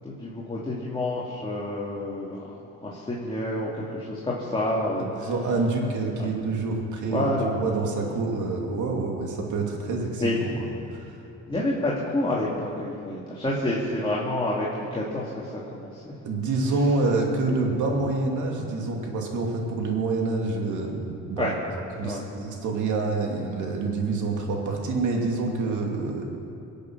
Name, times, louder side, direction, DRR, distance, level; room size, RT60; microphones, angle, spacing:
voice 1, 0.0-5.3 6.2-6.3 7.1-7.5 8.1-8.2 10.2-11.1 11.5-16.2 21.4-21.5 22.0-22.2, left 1 dB, 15° left, -6 dB, 2.5 m, -29 dB
voice 2, 5.0-10.2 10.9-11.1 16.2-21.5 22.0-26.2, right 3 dB, 75° right, 1 dB, 2.5 m, -27 dB
22.0 x 8.4 x 6.0 m, 2.7 s
cardioid pair, 90°, 30 cm